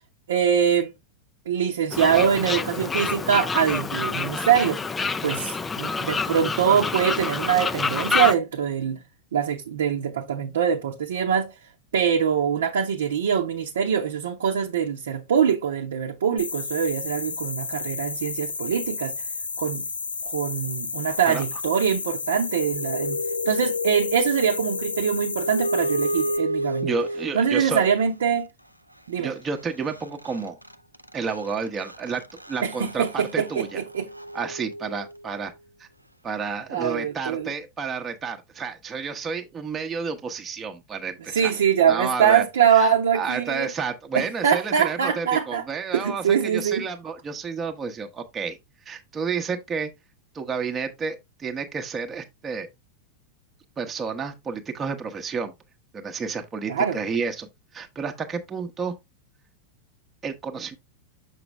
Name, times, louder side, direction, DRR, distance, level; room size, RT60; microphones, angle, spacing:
voice 1, 0.3-0.9 1.5-4.8 5.2-9.0 9.3-11.5 11.9-19.1 19.6-19.9 20.2-26.9 27.3-28.5 29.1-29.3 32.6-34.1 36.7-37.5 41.3-43.7 44.1-45.6 45.9-46.8 56.7-57.0, right 8 dB, 65° right, 0.8 m, -23 dB
Fowl, 1.9-8.3, left 4 dB, 15° left, 0.4 m, -27 dB
sound 1, 16.4-26.4, left 4 dB, 75° left, 0.8 m, -32 dB
sound 2, 22.4-27.7 29.6-29.7 29.9-35.4, equal, 90° right, 0.4 m, -32 dB
voice 2, 26.8-27.9 29.2-30.6 31.1-32.2 32.5-33.8 34.3-35.5 35.8-35.9 36.2-41.5 41.9-48.6 48.9-49.9 50.3-52.7 53.8-55.5 55.9-58.9 60.2-60.7, right 5 dB, 20° right, 0.9 m, -31 dB
6.9 x 4.9 x 3.1 m
figure-of-eight pair, 90°, 0 cm